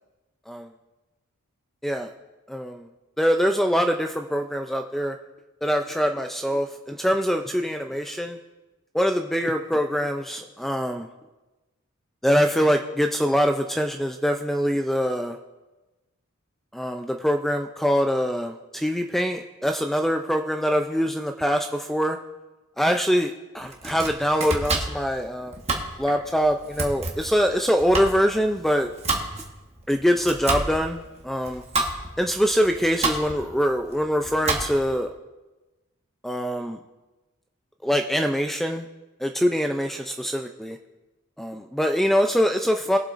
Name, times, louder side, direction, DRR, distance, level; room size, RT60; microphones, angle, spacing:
voice 1, 2.5-2.8 3.2-5.2 5.6-8.4 8.9-11.1 12.2-15.4 16.7-22.2 22.8-25.5 26.0-28.9 29.9-31.6 32.2-35.1 36.2-36.8 37.8-38.9 39.2-40.8 41.4-43.0, equal, ahead, 5 dB, 0.3 m, -24 dB
Domestic sounds home sounds, 23.6-35.0, right 3 dB, 30° right, 1.3 m, -30 dB
20.5 x 7.6 x 2.5 m, 1.1 s
head